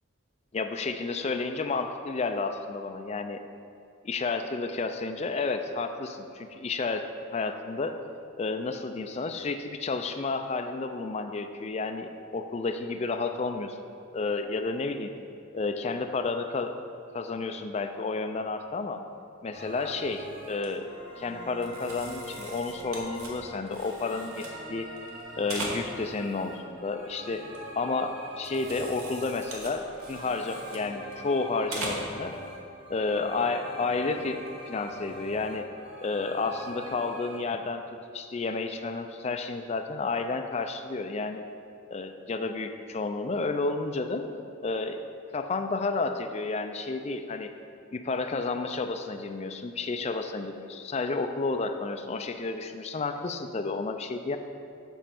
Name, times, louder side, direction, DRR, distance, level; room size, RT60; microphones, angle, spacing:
voice 1, 0.5-3.4 4.0-7.0 7.3-8.0 8.4-13.8 14.1-15.1 15.5-16.7 17.1-19.0 19.4-20.9 21.2-24.9 25.4-27.4 27.8-32.4 32.9-35.7 36.0-41.4 41.9-44.3 44.6-45.1 45.3-47.5 47.9-54.4, left 3 dB, 30° left, 6 dB, 0.3 m, -31 dB
sound 1, 19.5-37.4, equal, 25° right, 1.4 m, -43 dB
sound 2, 19.7-20.0 20.3-20.7 21.6-24.6 24.9-26.2 26.6-28.0 28.3-31.3 31.7-32.2 32.6-32.7 34.2-34.5, right 2 dB, 90° right, 1.2 m, -41 dB
7.2 x 4.3 x 5.9 m, 2.5 s
head